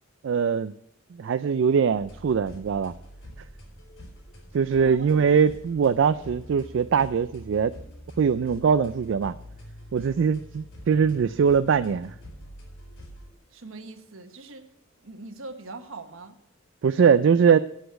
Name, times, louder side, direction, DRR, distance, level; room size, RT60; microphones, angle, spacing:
voice 1, 0.2-0.7 1.2-2.9 4.5-7.7 8.2-9.3 9.9-12.1 16.8-17.6, right 6 dB, 60° right, 13 dB, 0.3 m, -22 dB
sound 1, 1.9-13.3, equal, 70° left, 3.8 m, -45 dB
voice 2, 4.8-5.1 13.5-14.7 15.0-16.4, right 3 dB, 80° right, 8 dB, 1.2 m, -42 dB
8.3 x 7.9 x 8.0 m, 0.74 s
head